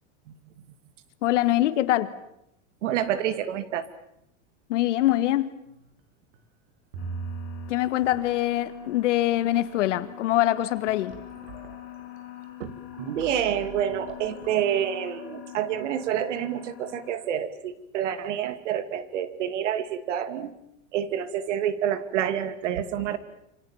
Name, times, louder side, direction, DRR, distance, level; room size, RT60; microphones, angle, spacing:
voice 1, 1.2-2.1 4.7-5.5 7.7-11.2, left 14 dB, 75° left, 2.0 m, -24 dB
voice 2, 2.8-3.9 12.6-20.5 20.9-23.2, right 10 dB, 75° right, 2.7 m, -28 dB
sound 1, 5.7-6.0 6.3-6.4 6.9-7.7 8.0-8.6 9.3-9.4 9.7-10.1 10.6-16.2, right 4 dB, 50° right, 6.9 m, -41 dB
sound 2, 7.0-17.1, left 11 dB, 40° left, 7.4 m, -44 dB
27.5 x 26.5 x 7.3 m
supercardioid pair, 175°, 36 cm